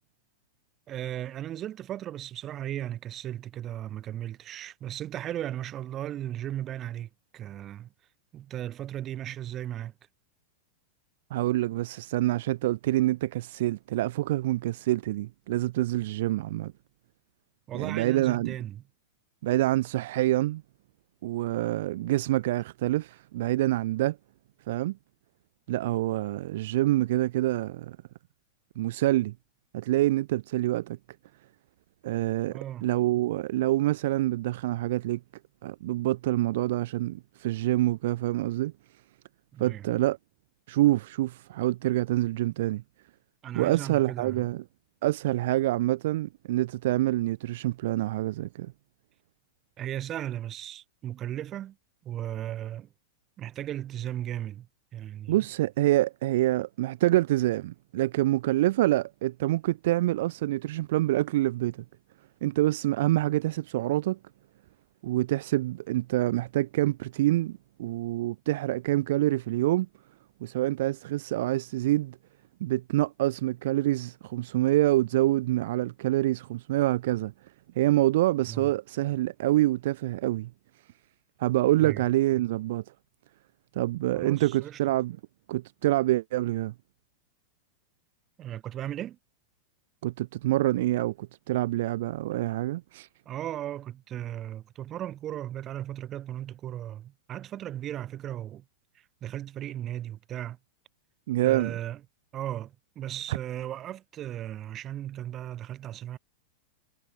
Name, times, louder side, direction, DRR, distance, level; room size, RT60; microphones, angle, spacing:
voice 1, 0.9-7.9 8.3-9.9 17.7-18.8 32.5-32.9 39.5-39.9 43.4-44.5 49.8-51.8 52.0-52.9 53.4-54.7 54.9-55.4 78.5-78.7 81.8-82.0 84.1-84.8 88.4-89.2 93.2-98.6 99.2-100.6 101.4-102.0 102.3-106.2, right 12 dB, 35° right, 1.7 m, -36 dB
voice 2, 11.3-16.7 17.7-18.6 19.4-20.6 21.2-24.2 24.7-25.0 25.7-28.0 28.8-29.3 29.7-31.0 32.0-35.2 35.6-38.7 39.6-40.2 40.7-42.8 43.5-44.6 45.0-48.7 55.3-61.8 62.4-64.2 65.0-69.9 70.4-72.2 72.6-77.3 77.8-80.5 81.4-82.8 83.7-85.2 85.5-86.7 90.0-93.1 101.3-101.7, right 16 dB, 65° right, 0.6 m, -26 dB
hypercardioid pair, 120°, 0 cm